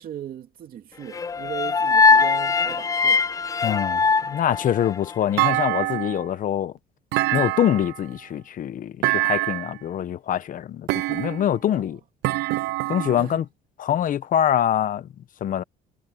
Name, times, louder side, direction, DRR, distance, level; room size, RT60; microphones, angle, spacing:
voice 1, 0.0-3.2 7.3-7.6 11.7-11.9 13.2-13.4, right 10 dB, 60° right, 2.8 m, -38 dB
sound 1, 1.1-5.3, left 4 dB, 20° left, 0.4 m, -21 dB
voice 2, 3.6-6.7 7.3-12.0 12.9-13.4 13.8-15.1 15.4-15.6, left 10 dB, 50° left, 1.1 m, -24 dB
Thump thud, 5.4-6.3 7.1-8.0 9.0-9.8 10.9-11.6 12.2-13.3, right 20 dB, 85° right, 0.5 m, -25 dB
cardioid pair, 110°, 17 cm